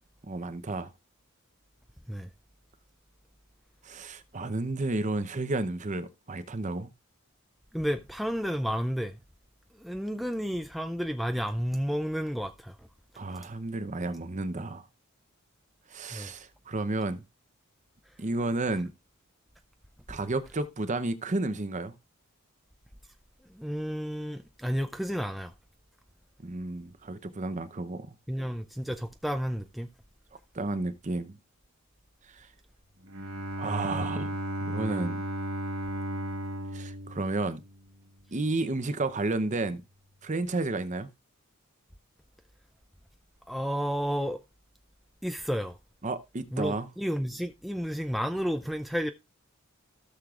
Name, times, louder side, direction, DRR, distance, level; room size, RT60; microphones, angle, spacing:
voice 1, 0.2-0.9 3.8-6.9 13.2-14.9 15.9-17.2 18.2-18.9 20.1-21.9 26.4-28.2 30.5-31.4 32.3-32.5 33.6-35.3 36.7-37.6 38.3-39.8 40.2-41.1 46.0-46.9, right 2 dB, 35° right, 0.7 m, -32 dB
voice 2, 7.7-9.2 9.8-12.8 16.1-16.3 23.5-25.5 28.3-29.9 43.5-44.4 45.2-45.8 46.5-49.1, equal, ahead, 0.4 m, -31 dB
Bowed string instrument, 33.0-38.0, right 1 dB, 65° right, 1.4 m, -35 dB
16.5 x 6.5 x 2.4 m
head